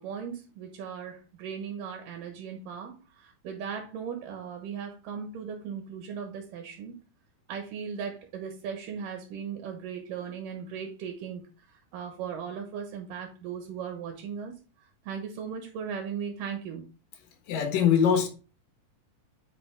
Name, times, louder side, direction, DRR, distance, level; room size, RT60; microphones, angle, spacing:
voice 1, 0.0-6.9 7.5-14.6 15.1-16.8, right 7 dB, 80° right, 2.9 m, -37 dB
voice 2, 17.5-18.3, left 7 dB, 75° left, 3.0 m, -22 dB
9.2 x 5.4 x 3.5 m
omnidirectional pair, 4.0 m